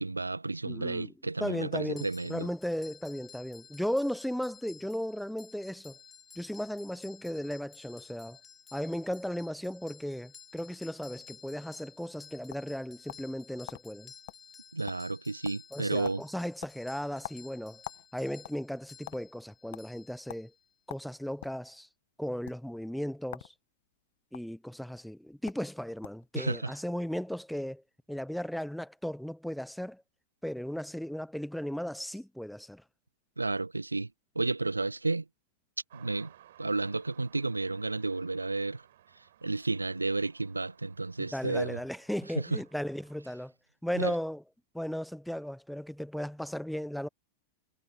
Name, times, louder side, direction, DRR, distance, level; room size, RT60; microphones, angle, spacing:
voice 1, 0.0-2.5 14.7-16.2 26.3-26.7 33.4-34.1 34.3-35.2 35.9-36.3 36.6-38.8 39.4-41.8 42.3-42.6 43.9-44.1, right 3 dB, 80° right, 1.6 m, -32 dB
voice 2, 0.6-1.1 1.4-6.0 6.4-8.4 8.7-14.1 15.7-17.8 18.1-20.5 20.9-21.9 22.2-23.5 24.3-27.8 28.1-30.0 30.4-32.8 41.2-43.5 43.8-44.4 44.7-47.1, equal, ahead, 0.9 m, -36 dB
sound 1, 2.0-20.7, left 7 dB, 20° left, 6.9 m, -54 dB
sound 2, 11.9-13.4 13.7-13.8 14.3-14.4 14.7-15.2 15.4-15.8 16.0-16.2 16.6-18.1 18.4-19.2 19.7-19.9 20.3-20.5 20.9-21.6 22.4-22.6 23.3-23.5 23.8-24.4 25.1-25.2 25.5-25.7 26.0-26.3, left 17 dB, 55° left, 1.8 m, -44 dB
sound 3, 35.9-43.2, right 12 dB, 60° right, 4.6 m, -59 dB
figure-of-eight pair, 90°, 0 cm